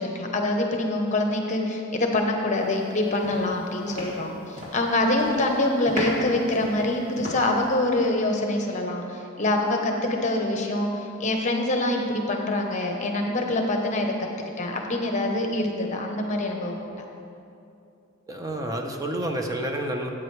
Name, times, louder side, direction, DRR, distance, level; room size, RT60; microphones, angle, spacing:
voice 1, 0.0-10.9 11.2-14.1 14.6-16.8, left 2 dB, 40° left, 2 dB, 1.0 m, -25 dB
sound 1, 2.7-2.9 3.2-4.9 5.1-5.5 5.9-7.7, left 1 dB, 40° right, 2.5 m, -35 dB
voice 2, 18.3-20.1, right 1 dB, 20° right, 3 dB, 0.8 m, -29 dB
13.0 x 8.7 x 3.3 m, 2.6 s
head